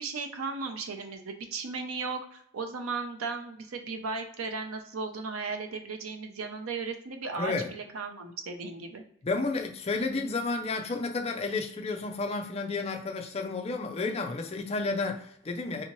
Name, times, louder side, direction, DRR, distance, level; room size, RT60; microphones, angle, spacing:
voice 1, 0.0-9.0, right 4 dB, 90° right, 5 dB, 0.6 m, -36 dB
voice 2, 7.4-7.7 9.2-15.8, left 3 dB, 30° left, 4 dB, 0.4 m, -31 dB
3.3 x 2.8 x 3.0 m, 0.70 s
head